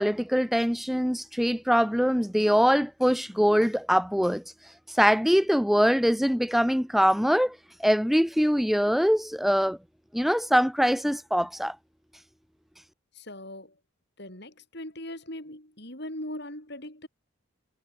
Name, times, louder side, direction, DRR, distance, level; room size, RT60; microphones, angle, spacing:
voice 1, 0.0-9.8 10.1-11.8, equal, ahead, 1.1 m, -23 dB
voice 2, 13.1-13.8 14.2-17.1, left 1 dB, 50° left, 7.9 m, -40 dB
head